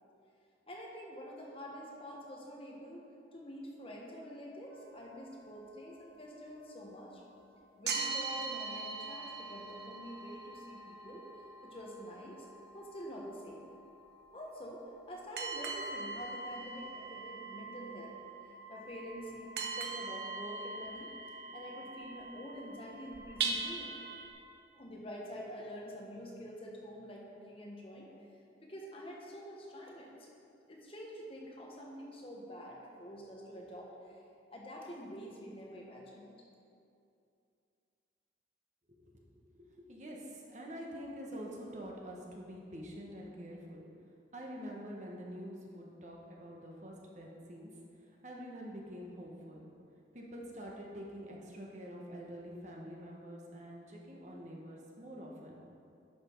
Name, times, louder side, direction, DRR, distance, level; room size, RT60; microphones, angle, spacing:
voice 1, 0.7-3.0 3.3-7.2 7.8-11.2 11.6-12.5 12.7-13.7 14.3-18.2 18.7-21.1 21.5-23.9 24.7-28.1 28.6-30.1 30.7-34.2 34.5-36.4, equal, 30° left, -2 dB, 1.2 m, -47 dB
sound 1, 4.7-7.5 7.8-24.3, right 4 dB, 60° right, 0.9 m, -42 dB
voice 2, 38.9-39.2 39.5-43.8 44.3-47.7 48.0-49.6 50.1-55.6, equal, 40° right, -2 dB, 1.2 m, -46 dB
11.0 x 6.1 x 4.5 m, 2.6 s
head